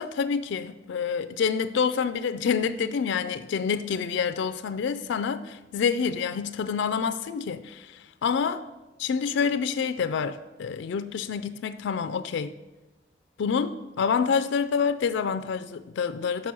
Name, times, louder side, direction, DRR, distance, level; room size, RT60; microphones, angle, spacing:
voice 1, 0.0-8.7 9.0-12.5 13.4-16.5, left 6 dB, 65° left, 0.3 m, -27 dB
6.0 x 5.9 x 6.1 m
head